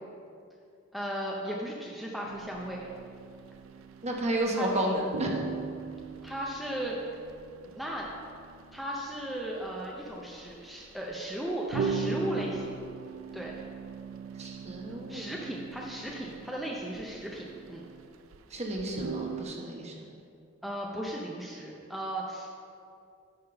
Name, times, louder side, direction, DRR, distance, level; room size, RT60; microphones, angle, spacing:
voice 1, 0.9-2.9 4.5-4.7 6.2-7.0 7.7-8.1 8.7-12.8 13.3-13.6 15.1-17.8 20.6-22.5, right 1 dB, ahead, -3 dB, 0.6 m, -36 dB
sound 1, 2.2-4.5 4.8-4.9 5.1-18.4 18.7-19.4, right 5 dB, 80° right, 0.4 m, -39 dB
voice 2, 4.0-5.4 14.4-15.3 18.5-19.9, right 1 dB, 35° right, 0 dB, 0.9 m, -31 dB
8.8 x 3.5 x 5.7 m, 2.4 s
head